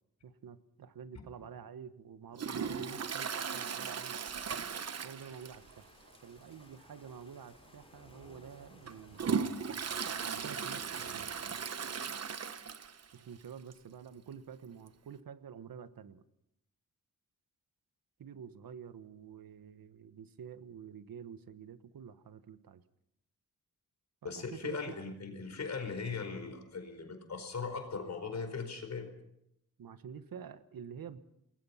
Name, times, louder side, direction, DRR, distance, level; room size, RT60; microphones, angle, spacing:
voice 1, 0.2-4.2 5.0-5.9 6.2-9.9 10.3-11.3 13.1-16.2 18.2-22.8 24.2-25.0 29.8-31.2, right 7 dB, 70° right, 12 dB, 1.4 m, -49 dB
Toilet flush, 2.4-5.8 6.1-6.2 6.6-6.7 7.5-7.7 8.2-13.1 13.4-13.5 13.7-13.8 14.9-15.0, right 6 dB, 45° right, 1.1 m, -37 dB
sound 1, 5.1-11.6, left 2 dB, 15° left, 3.6 m, -59 dB
voice 2, 24.2-29.1, left 5 dB, 50° left, 7 dB, 4.8 m, -39 dB
27.5 x 21.0 x 5.8 m, 0.78 s
wide cardioid pair, 180°, 36 cm